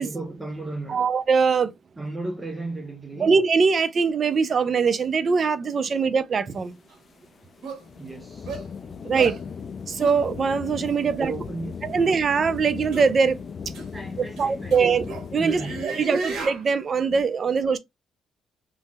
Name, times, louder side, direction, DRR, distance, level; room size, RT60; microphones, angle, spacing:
voice 1, 0.0-1.1 2.0-3.3 5.9-6.1 8.0-8.6 11.0-12.1 13.9-15.1 15.4-16.0 17.4-17.5, right 2 dB, 20° right, 0.8 m, -36 dB
voice 2, 0.9-1.7 3.2-6.8 9.0-9.4 9.9-11.3 11.8-13.4 14.4-15.0 15.3-17.8, right 5 dB, 45° right, 0.5 m, -22 dB
sound 1, 6.6-15.9, left 6 dB, 45° left, 0.3 m, -38 dB
sound 2, 6.9-7.0 7.6-7.8 8.5-8.6 9.1-9.4 10.0-10.2 10.8-10.9 11.9-12.2 12.9-13.1 13.7-13.9 14.3-16.6, right 3 dB, 75° right, 1.3 m, -34 dB
3.1 x 2.7 x 2.2 m
cardioid pair, 90°, 0 cm